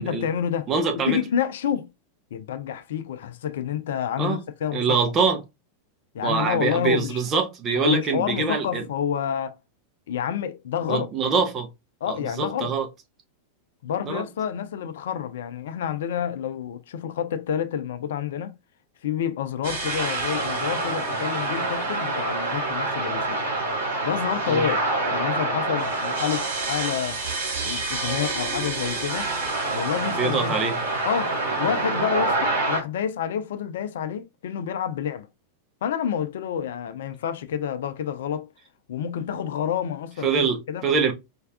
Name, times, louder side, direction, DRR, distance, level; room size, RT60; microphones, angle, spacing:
voice 1, 0.0-0.7 0.9-1.9 2.3-4.8 6.1-7.2 7.7-9.6 10.1-11.1 12.0-12.7 13.8-18.5 19.0-23.4 24.0-24.8 25.1-27.2 27.6-29.3 29.7-30.5 31.0-35.3 35.8-38.5 38.9-40.9, left 8 dB, 60° left, 0.5 m, -28 dB
voice 2, 0.7-1.2 4.2-4.4 4.7-5.4 6.2-8.8 10.9-11.7 12.1-12.9 14.0-14.3 24.5-24.6 30.2-30.7 40.2-41.1, right 5 dB, 30° right, 1.1 m, -24 dB
sound 1, 19.6-32.8, right 2 dB, 60° right, 2.6 m, -27 dB
4.4 x 3.3 x 2.3 m
figure-of-eight pair, 90°, 0 cm